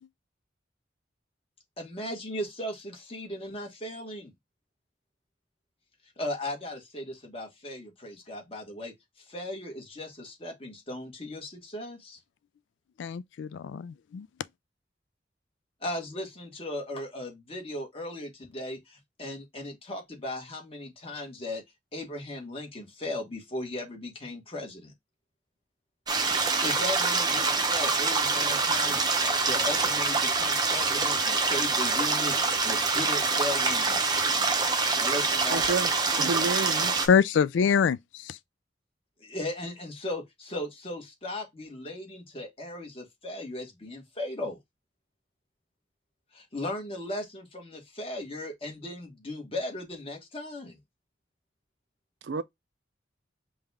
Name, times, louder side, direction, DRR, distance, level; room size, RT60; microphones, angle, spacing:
voice 1, 1.8-4.3 6.2-8.9 9.3-12.2 15.8-21.6 21.9-24.9 26.3-34.0 35.0-35.6 39.2-44.6 46.3-50.8, left 1 dB, 30° left, 1.4 m, -37 dB
voice 2, 13.0-14.3 37.0-38.4, left 6 dB, 85° left, 0.3 m, -25 dB
sound 1, 26.1-37.1, right 4 dB, 25° right, 0.6 m, -25 dB
voice 3, 35.5-35.9 36.1-36.9 52.2-52.4, right 4 dB, 70° right, 0.5 m, -29 dB
5.4 x 2.3 x 3.4 m
head